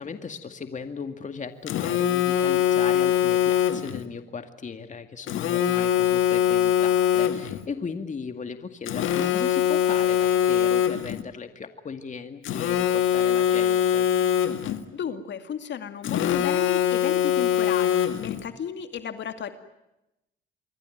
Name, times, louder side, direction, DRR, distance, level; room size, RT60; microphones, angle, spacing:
voice 1, 0.0-14.1, left 5 dB, 40° left, 8 dB, 2.2 m, -37 dB
Telephone, 1.7-4.0 5.3-7.6 8.9-11.2 12.5-14.8 16.0-18.4, left 10 dB, 85° left, 1.9 m, -23 dB
voice 2, 14.9-19.5, left 8 dB, 65° left, 8 dB, 2.4 m, -33 dB
28.0 x 22.5 x 9.3 m, 0.91 s
cardioid pair, 90°, 20 cm